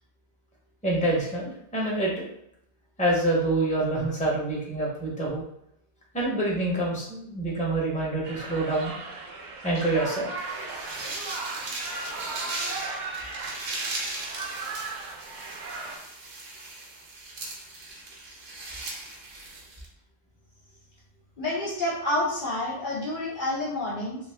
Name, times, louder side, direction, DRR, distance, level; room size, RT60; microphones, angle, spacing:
voice 1, 0.8-2.2 3.0-5.4 6.1-8.9 9.6-10.3, right 2 dB, 10° left, -3 dB, 0.7 m, -26 dB
sound 1, 8.2-16.0, right 3 dB, 55° right, 0.6 m, -37 dB
sound 2, 10.4-19.9, right 2 dB, 80° right, 1.0 m, -37 dB
voice 2, 21.4-24.2, left 1 dB, 55° left, -4 dB, 0.7 m, -28 dB
2.5 x 2.3 x 3.3 m, 0.75 s
omnidirectional pair, 1.1 m